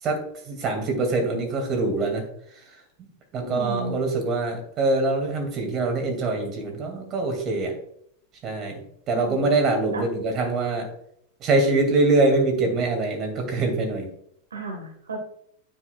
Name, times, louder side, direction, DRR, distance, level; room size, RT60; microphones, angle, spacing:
voice 1, 0.0-2.8 3.3-7.7 8.4-8.8 9.1-10.9 11.4-14.1, right 3 dB, 30° right, 3 dB, 2.3 m, -24 dB
voice 2, 3.4-4.0 9.1-9.5 9.9-10.0 14.5-15.2, right 2 dB, 70° right, 1 dB, 1.5 m, -33 dB
10.0 x 7.2 x 2.3 m, 0.68 s
figure-of-eight pair, 90°, 0 cm